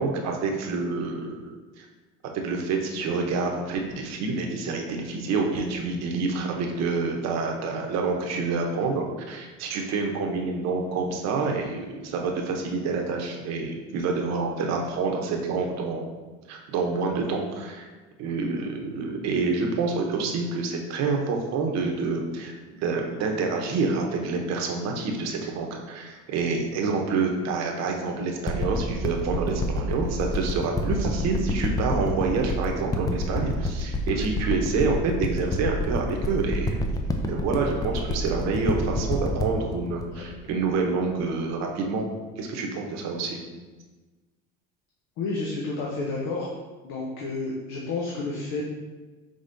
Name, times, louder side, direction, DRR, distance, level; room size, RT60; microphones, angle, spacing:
voice 1, 0.0-1.8 2.2-16.1 16.5-17.9 18.2-36.8 37.3-42.1 42.4-43.4, right 4 dB, 60° right, 2 dB, 0.9 m, -27 dB
sound 1, 28.5-41.2 41.8-41.9, left 1 dB, 10° left, 0.4 m, -28 dB
voice 2, 45.2-46.5 46.8-48.6, left 3 dB, 70° left, -3 dB, 0.9 m, -30 dB
5.1 x 3.6 x 2.7 m, 1.2 s
supercardioid pair, 100°, 31 cm